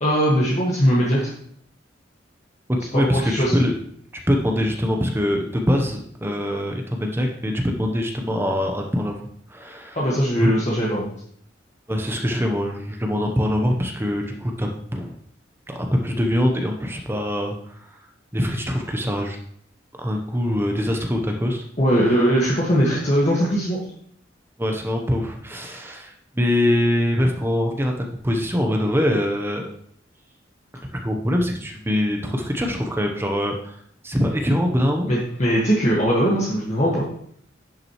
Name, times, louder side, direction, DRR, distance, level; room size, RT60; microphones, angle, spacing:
voice 1, 0.0-1.3 2.9-3.6 9.9-11.1 21.8-23.8 35.1-37.0, equal, 40° left, -5 dB, 1.7 m, -20 dB
voice 2, 2.9-3.7 4.3-9.2 9.5-10.0 10.4-10.5 11.9-15.2 15.7-17.9 18.3-19.4 20.0-21.6 24.6-29.7 30.9-33.8 34.0-35.1, equal, 15° right, 2 dB, 0.8 m, -23 dB
10.5 x 6.0 x 3.1 m, 0.65 s
head